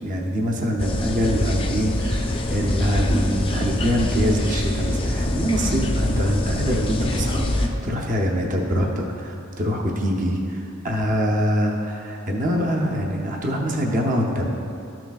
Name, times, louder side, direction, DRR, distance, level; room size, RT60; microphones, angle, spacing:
voice 1, 0.0-14.5, equal, 35° right, 0 dB, 0.7 m, -24 dB
sound 1, 0.8-7.7, left 1 dB, 25° left, 0.4 m, -24 dB
12.5 x 5.9 x 2.4 m, 2.6 s
head